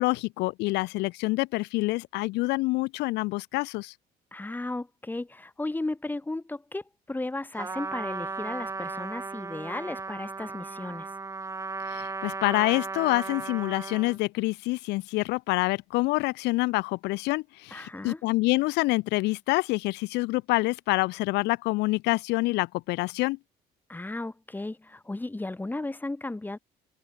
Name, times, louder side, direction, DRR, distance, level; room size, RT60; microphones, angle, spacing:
voice 1, 0.0-3.9 11.9-23.4, left 22 dB, 85° left, 0.5 m, -27 dB
voice 2, 4.3-11.1 17.7-18.2 23.9-26.6, left 2 dB, 10° left, 1.9 m, -35 dB
Trumpet, 7.6-14.2, right 4 dB, 20° right, 0.8 m, -36 dB
cardioid pair, 110°, 17 cm